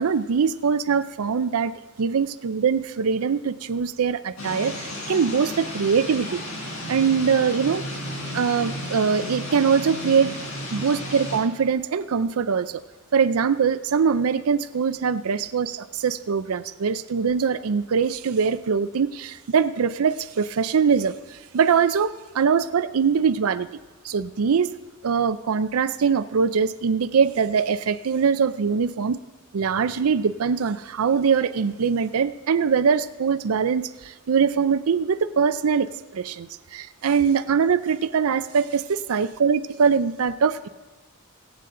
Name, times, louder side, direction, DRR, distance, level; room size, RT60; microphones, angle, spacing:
voice 1, 0.0-1.7 2.0-6.4 6.9-7.8 8.3-10.4 10.7-12.8 13.1-23.8 24.0-24.7 25.0-29.2 29.5-40.7, right 6 dB, 90° right, 0.5 m, -22 dB
sound 1, 4.4-11.4, left 1 dB, 85° left, 4.8 m, -33 dB
23.5 x 8.2 x 3.8 m
head